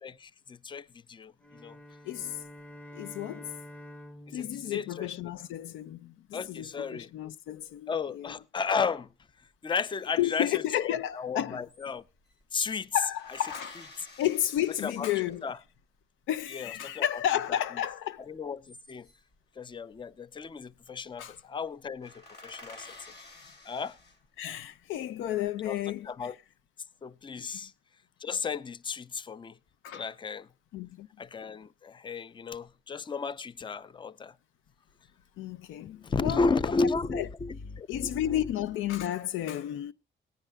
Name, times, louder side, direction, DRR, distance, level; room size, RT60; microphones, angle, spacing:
voice 1, 0.0-1.3 1.6-1.8 4.3-5.1 6.3-7.1 7.9-9.1 9.6-10.5 10.9-12.0 12.5-12.9 14.8-15.1 15.4-15.6 16.5-17.1 18.3-19.1 19.6-23.0 23.7-24.0 25.7-25.8 26.0-26.3 27.0-27.7 28.2-29.6 29.9-30.5 31.2-34.3 36.0-38.5, left 4 dB, 25° left, 0.5 m, -33 dB
sound 1, 1.4-5.9, left 1 dB, 5° left, 1.0 m, -49 dB
voice 2, 2.0-2.4 3.0-3.5 4.3-8.3 10.2-11.6 12.9-13.8 14.2-15.4 16.3-18.2 21.2-21.4 24.4-26.3 27.4-27.5 29.8-30.0 30.7-31.1 35.4-36.4 37.1-37.3 37.9-39.9, left 12 dB, 85° left, 0.6 m, -32 dB
sound 2, 11.1-11.2 11.4-12.4 13.2-15.7 18.4-19.3 20.5-20.9 21.2-21.3 21.7-21.8 22.0-24.6 25.1-25.8, left 2 dB, 55° left, 2.9 m, -50 dB
18.5 x 10.0 x 2.3 m
cardioid pair, 90°, 20 cm